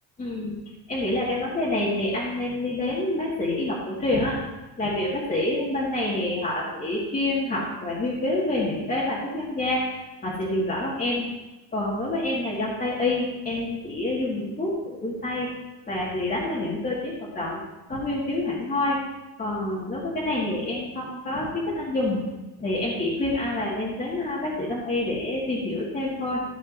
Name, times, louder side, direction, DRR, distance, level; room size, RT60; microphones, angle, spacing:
voice 1, 0.2-0.5 0.9-4.4 4.8-9.9 10.2-11.3 11.7-15.5 15.9-17.6 17.9-19.0 19.4-22.3 22.6-26.4, left 2 dB, 20° left, -8 dB, 1.9 m, -27 dB
14.0 x 7.3 x 2.7 m, 1.1 s
cardioid pair, 145°, 40 cm